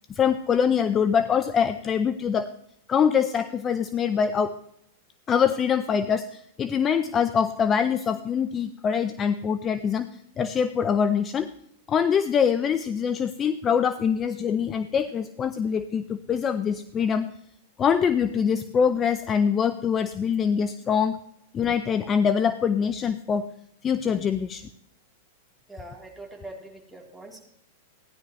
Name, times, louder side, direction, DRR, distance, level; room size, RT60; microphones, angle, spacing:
voice 1, 0.1-2.5 2.9-4.5 5.3-10.1 10.4-11.5 11.9-17.3 17.8-21.2 21.5-23.5 23.8-24.7, left 7 dB, 25° left, 12 dB, 0.6 m, -24 dB
voice 2, 25.7-27.4, right 2 dB, ahead, -2 dB, 3.3 m, -43 dB
16.0 x 11.0 x 3.1 m, 0.77 s
hypercardioid pair, 110°, 0 cm